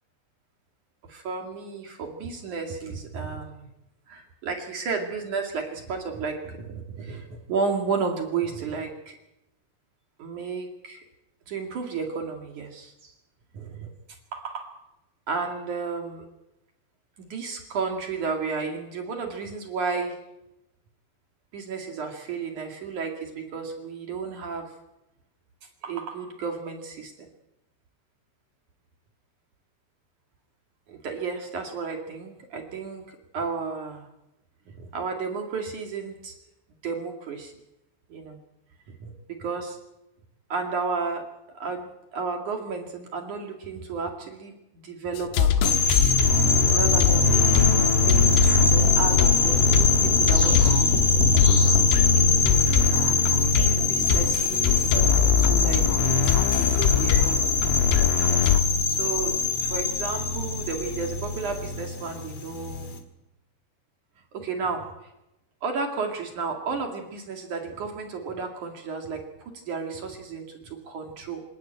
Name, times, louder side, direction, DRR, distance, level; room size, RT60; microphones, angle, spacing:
voice 1, 1.0-3.7 4.1-9.2 10.2-11.0 11.5-13.1 13.5-13.9 14.3-14.7 15.3-16.3 17.2-20.2 21.5-24.7 25.8-27.3 30.9-34.1 34.7-36.3 36.8-37.5 38.1-38.4 39.0-39.8 40.5-41.3 41.5-46.1 46.4-47.7 48.1-50.9 52.5-52.6 53.6-55.8 56.5-57.6 58.3-62.9 64.3-64.9 65.6-71.4, right 5 dB, 50° right, 3 dB, 2.9 m, -33 dB
sound 1, 45.2-58.6, left 9 dB, 80° left, 3.7 m, -24 dB
sound 2, 45.6-63.0, left 3 dB, 50° left, 2.0 m, -22 dB
27.0 x 13.5 x 9.1 m, 0.92 s
omnidirectional pair, 5.7 m